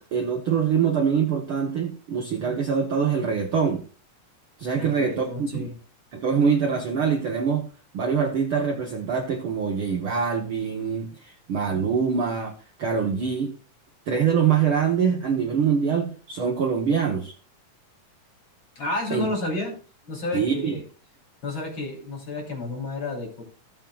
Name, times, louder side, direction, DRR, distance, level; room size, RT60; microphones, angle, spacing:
voice 1, 0.1-3.8 4.6-5.7 6.1-7.7 7.9-12.5 12.8-13.5 14.1-17.3 19.1-19.3 20.3-20.8, right 6 dB, 60° right, 1 dB, 1.5 m, -24 dB
voice 2, 4.8-5.8 18.8-19.7 20.1-20.8 21.4-23.4, left 2 dB, 40° left, -1 dB, 3.5 m, -31 dB
17.5 x 7.4 x 2.4 m, 0.38 s
omnidirectional pair, 3.6 m